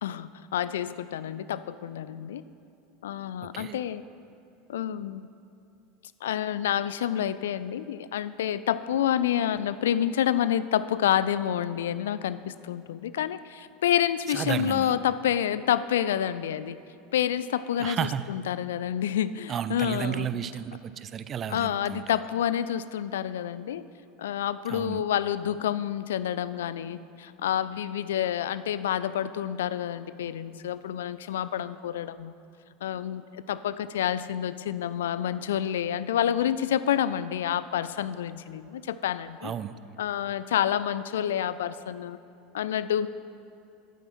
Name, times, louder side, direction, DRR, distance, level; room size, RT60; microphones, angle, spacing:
voice 1, 0.0-2.4 3.0-4.0 4.7-5.3 6.2-16.8 17.1-20.3 21.5-23.8 24.2-32.3 32.8-39.5 40.0-42.2 42.5-43.1, left 10 dB, 70° left, 15 dB, 0.3 m, -28 dB
voice 2, 14.3-14.9 17.8-18.2 19.5-22.2 24.7-25.0 39.4-39.7, right 9 dB, 35° right, 13 dB, 0.4 m, -32 dB
11.0 x 8.9 x 4.3 m, 2.7 s
figure-of-eight pair, 75°, 0 cm